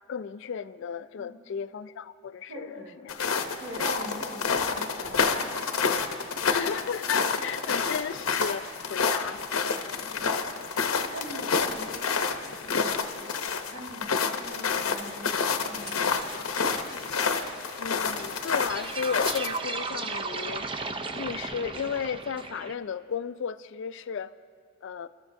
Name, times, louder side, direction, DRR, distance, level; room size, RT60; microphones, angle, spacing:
voice 1, 0.1-3.2 6.5-9.4 17.8-20.7 21.1-24.3 24.8-25.1, left 7 dB, 60° left, 14 dB, 0.3 m, -34 dB
voice 2, 2.5-3.0 3.6-5.5 5.9-6.5 9.6-10.4 11.1-13.4 13.7-16.6, right 1 dB, 80° right, -3 dB, 4.1 m, -43 dB
sound 1, 3.1-19.6, left 5 dB, 85° left, 0.8 m, -29 dB
sound 2, 15.6-22.7, right 4 dB, 25° right, 0.5 m, -37 dB
27.5 x 13.0 x 2.6 m, 2.2 s
head